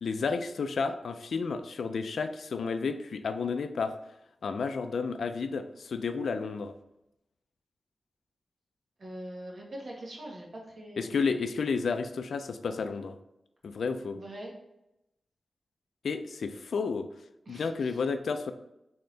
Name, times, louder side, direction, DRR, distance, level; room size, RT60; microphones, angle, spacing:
voice 1, 0.0-3.9 4.4-6.7 11.0-13.2 13.6-14.2 16.0-17.1 17.5-18.5, left 5 dB, 80° left, 9 dB, 0.4 m, -31 dB
voice 2, 9.0-11.2 14.1-14.5 17.5-18.0, right 1 dB, 45° right, -2 dB, 1.3 m, -43 dB
4.3 x 3.7 x 3.2 m, 0.86 s
wide cardioid pair, 150°, 0 cm